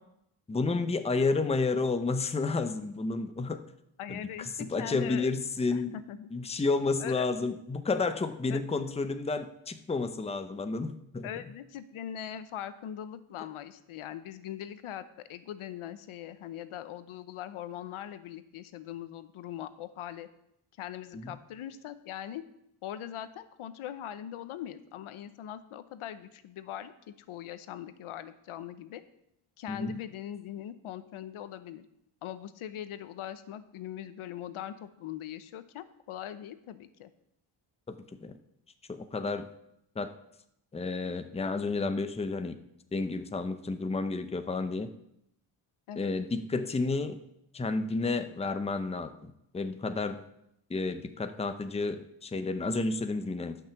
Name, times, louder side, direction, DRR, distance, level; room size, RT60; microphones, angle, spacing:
voice 1, 0.5-3.6 4.1-6.0 6.3-11.3 21.1-21.2 29.7-30.0 37.9-38.3 38.9-39.5 40.0-40.1 40.7-42.6 42.9-44.9 46.0-47.2 47.5-50.2 50.7-53.6, left 3 dB, 15° left, 8 dB, 0.7 m, -31 dB
voice 2, 4.0-5.3 5.7-6.3 7.0-7.3 8.5-8.6 11.2-20.3 20.8-22.4 22.8-29.0 29.6-31.9 32.2-37.1 45.9-46.1, left 11 dB, 85° left, 12 dB, 0.9 m, -41 dB
12.0 x 6.0 x 7.0 m, 0.78 s
cardioid pair, 135°, 49 cm